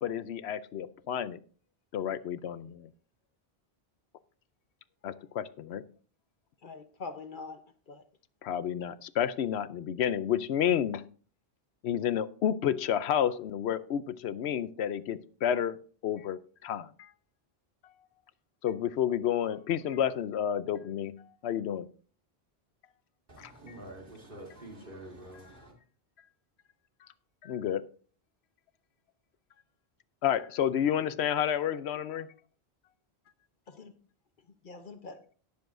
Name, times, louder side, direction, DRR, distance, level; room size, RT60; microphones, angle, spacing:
voice 1, 0.0-1.4 1.9-2.9 5.0-5.8 8.4-11.1 11.8-17.1 18.6-21.1 21.4-21.9 23.4-23.5 27.4-27.8 30.2-32.3, left 9 dB, 80° left, 0.9 m, -30 dB
voice 2, 6.6-8.0 33.7-34.0 34.4-35.2, left 4 dB, 55° left, 1.0 m, -44 dB
voice 3, 23.3-25.7, right 1 dB, 55° right, 3.0 m, -47 dB
18.5 x 6.9 x 2.5 m
omnidirectional pair, 1.1 m